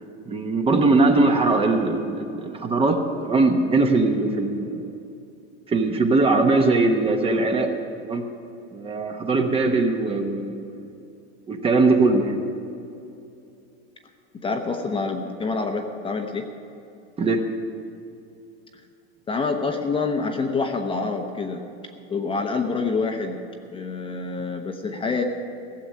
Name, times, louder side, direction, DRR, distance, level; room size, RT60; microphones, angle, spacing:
voice 1, 0.3-4.9 5.7-7.7 8.0-8.2 8.7-10.8 11.5-12.4 17.2-17.4, right 3 dB, 20° right, 4 dB, 1.1 m, -21 dB
voice 2, 14.3-16.4 19.3-21.6 22.1-23.4 23.7-25.2, left 4 dB, 15° left, 4 dB, 0.9 m, -26 dB
16.0 x 7.0 x 8.7 m, 2.7 s
supercardioid pair, 135°, 30 cm